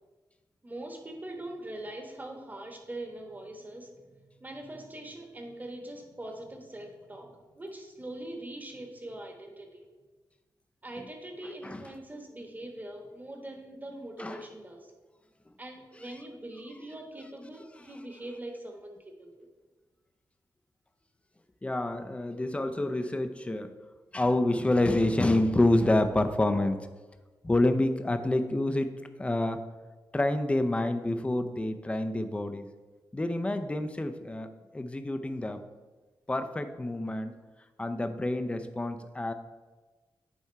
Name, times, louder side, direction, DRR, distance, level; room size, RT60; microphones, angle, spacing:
voice 1, 0.6-9.9 10.8-14.9 15.6-19.5, right 1 dB, 20° right, 3 dB, 1.2 m, -42 dB
voice 2, 21.6-23.7 24.1-26.8 27.4-28.9 29.2-29.6 30.1-32.7 33.1-34.5 34.7-35.6 36.3-37.3 37.8-39.3, left 1 dB, 15° left, 8 dB, 0.5 m, -27 dB
8.6 x 3.5 x 4.5 m, 1.3 s
cardioid pair, 85°, 8 cm